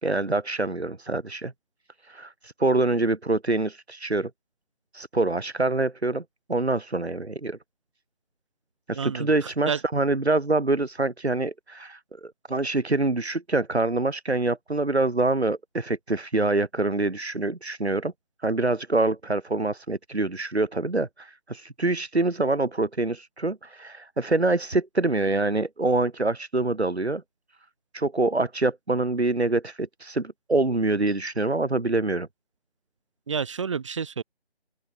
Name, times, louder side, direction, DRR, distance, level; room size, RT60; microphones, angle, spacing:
voice 1, 0.0-1.5 2.0-4.3 4.9-6.2 6.5-7.6 8.9-18.1 18.4-27.2 27.9-32.3, right 2 dB, 80° right, 2.5 m, -25 dB
voice 2, 8.9-9.8 33.3-34.2, right 6 dB, 30° right, 3.3 m, -30 dB
open air
figure-of-eight pair, 160°, 32 cm